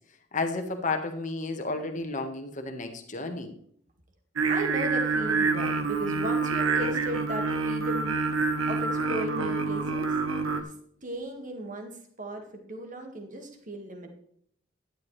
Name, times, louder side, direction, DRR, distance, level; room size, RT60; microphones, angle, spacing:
voice 1, 0.3-3.5, left 3 dB, 35° left, 6 dB, 1.4 m, -32 dB
Singing, 4.4-10.6, right 4 dB, 85° right, 1.3 m, -27 dB
voice 2, 4.5-10.2 10.6-10.7 11.0-11.9 12.2-14.1, right 1 dB, 40° right, 3 dB, 1.9 m, -36 dB
11.5 x 10.5 x 3.3 m, 0.64 s
head